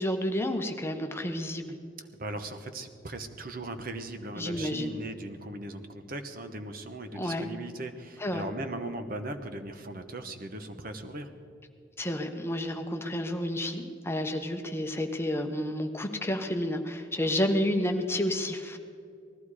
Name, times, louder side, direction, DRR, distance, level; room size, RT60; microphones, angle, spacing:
voice 1, 0.0-1.7 4.4-4.9 7.1-7.5 8.2-8.5 12.0-18.8, left 1 dB, 15° left, 5 dB, 1.0 m, -30 dB
voice 2, 2.0-11.3, right 2 dB, 50° right, 8 dB, 1.1 m, -38 dB
19.0 x 14.5 x 4.9 m, 2.5 s
head